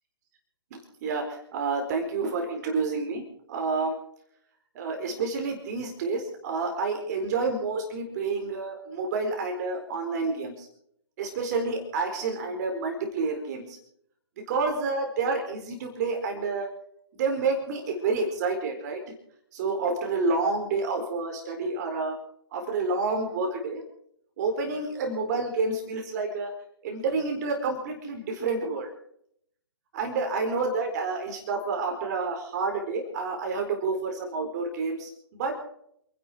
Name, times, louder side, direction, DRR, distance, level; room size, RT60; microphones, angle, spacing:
voice 1, 0.7-3.2 3.5-3.9 4.7-10.7 11.2-13.8 14.5-16.7 17.2-19.0 19.5-22.2 22.5-23.8 24.4-26.5 26.8-28.9 29.9-35.6, right 4 dB, 40° right, 3 dB, 4.4 m, -29 dB
28.0 x 11.0 x 4.5 m, 0.70 s
figure-of-eight pair, 135°, 14 cm